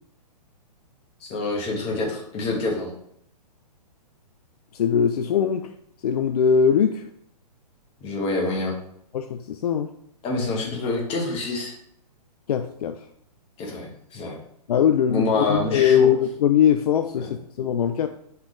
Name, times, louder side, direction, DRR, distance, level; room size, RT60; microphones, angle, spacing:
voice 1, 1.2-2.9 8.0-8.7 10.2-11.7 13.6-14.4 15.1-16.1, left 2 dB, 25° left, -1 dB, 1.4 m, -26 dB
voice 2, 4.7-5.7 6.0-7.1 9.1-9.9 12.5-13.0 14.7-18.1, left 8 dB, 65° left, 7 dB, 0.4 m, -21 dB
4.4 x 3.5 x 3.2 m, 0.71 s
hypercardioid pair, 130°, 21 cm